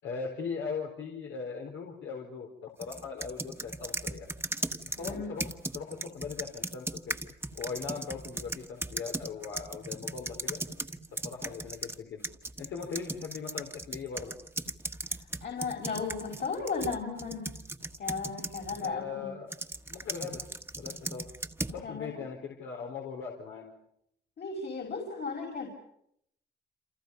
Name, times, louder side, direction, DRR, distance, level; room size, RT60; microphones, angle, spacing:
voice 1, 0.0-4.3 4.8-7.2 7.5-10.6 11.1-12.2 12.6-14.4 18.8-19.6 19.9-20.5 20.8-21.3 21.7-23.7, left 5 dB, 80° left, 1 dB, 4.2 m, -39 dB
sound 1, 2.8-12.0 12.2-18.9 19.5-21.8, right 2 dB, 10° right, 1.5 m, -37 dB
voice 2, 5.0-5.4 15.1-17.5 18.0-19.3 21.8-22.2 24.4-25.7, left 4 dB, 55° left, 2 dB, 5.8 m, -35 dB
29.0 x 27.0 x 5.5 m, 0.74 s
cardioid pair, 90°, 20 cm